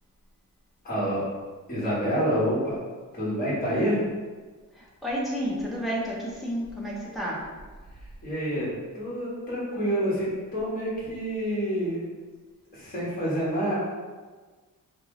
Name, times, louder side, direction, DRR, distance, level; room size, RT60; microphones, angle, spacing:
voice 1, 0.8-1.2 1.7-2.8 3.1-4.0 8.2-8.7 8.9-12.0 12.7-13.8, equal, 25° left, -8 dB, 1.3 m, -27 dB
voice 2, 4.7-7.4, equal, ahead, -6 dB, 0.7 m, -31 dB
4.4 x 2.0 x 3.7 m, 1.4 s
wide cardioid pair, 180°, 34 cm